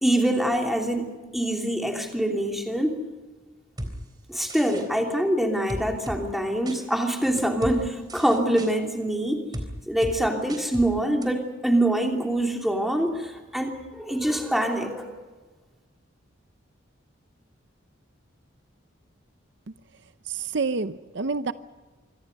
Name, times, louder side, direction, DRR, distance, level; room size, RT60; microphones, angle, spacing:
voice 1, 0.0-3.0 4.3-9.4 9.9-15.1, right 1 dB, ahead, 2 dB, 3.0 m, -25 dB
sound 1, 3.8-3.9 4.5-4.9 5.7-6.2 6.7-6.8 7.4-7.8 8.1-8.7 9.5-9.7 10.0-10.2 10.5-10.9 11.2-11.3, equal, 20° right, 3.5 m, -34 dB
voice 2, 20.3-21.5, right 4 dB, 60° right, 12 dB, 0.7 m, -28 dB
26.5 x 24.0 x 5.4 m, 1.3 s
head